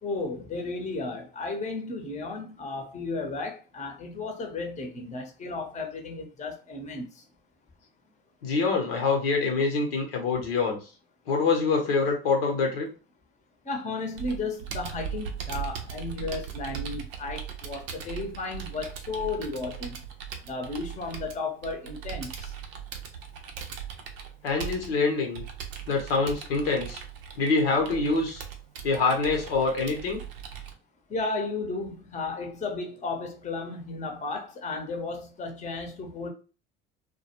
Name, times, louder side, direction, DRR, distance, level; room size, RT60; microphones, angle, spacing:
voice 1, 0.0-7.2 13.6-20.0 20.4-22.5 31.1-36.3, left 3 dB, 25° left, 0.7 m, -34 dB
voice 2, 8.4-10.8 11.3-12.9 24.4-25.4 25.9-27.0 27.4-28.4 28.8-30.2, left 4 dB, 80° left, 0.8 m, -25 dB
Computer keyboard, 14.2-30.7, right 8 dB, 75° right, 0.6 m, -39 dB
2.2 x 2.1 x 2.9 m
hypercardioid pair, 65°, 29 cm